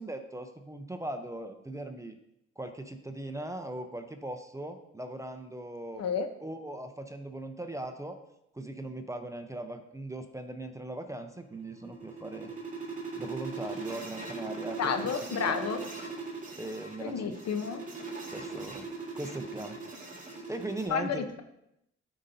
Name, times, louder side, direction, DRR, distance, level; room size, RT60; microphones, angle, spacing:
voice 1, 0.0-2.2 2.6-6.0 6.4-8.2 8.5-12.5 13.2-15.2 15.5-15.7 16.6-17.3 18.3-18.9 19.2-19.8 20.5-21.2, right 1 dB, 10° right, 6 dB, 0.6 m, -39 dB
sound 1, 11.4-20.9, right 4 dB, 25° right, 1.9 m, -40 dB
voice 2, 14.8-15.8 17.0-17.8 20.9-21.4, left 6 dB, 60° left, 8 dB, 0.8 m, -31 dB
12.5 x 5.2 x 2.7 m, 0.81 s
cardioid pair, 90°, 30 cm